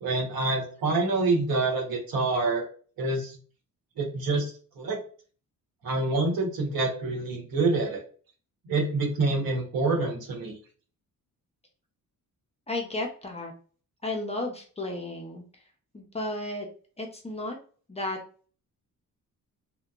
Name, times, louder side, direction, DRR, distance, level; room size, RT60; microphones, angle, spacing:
voice 1, 0.0-2.7 3.0-3.4 4.0-4.4 4.8-5.0 5.8-8.0 8.6-10.6, right 3 dB, 90° right, 0 dB, 1.0 m, -26 dB
voice 2, 12.7-13.5 14.0-15.4 15.9-16.7 17.0-17.6 17.9-18.2, left 2 dB, 20° left, 1 dB, 0.4 m, -33 dB
2.7 x 2.1 x 2.3 m, 0.41 s
wide cardioid pair, 140°, 35 cm